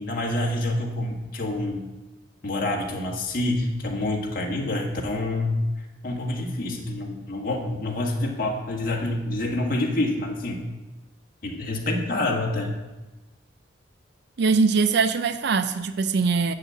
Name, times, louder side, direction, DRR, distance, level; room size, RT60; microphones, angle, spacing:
voice 1, 0.0-1.9 2.4-5.6 6.0-10.6 11.4-12.7, left 2 dB, 50° left, 1.6 m, -27 dB
voice 2, 14.4-16.5, right 4 dB, 60° right, 0.5 m, -22 dB
7.8 x 6.4 x 7.5 m
head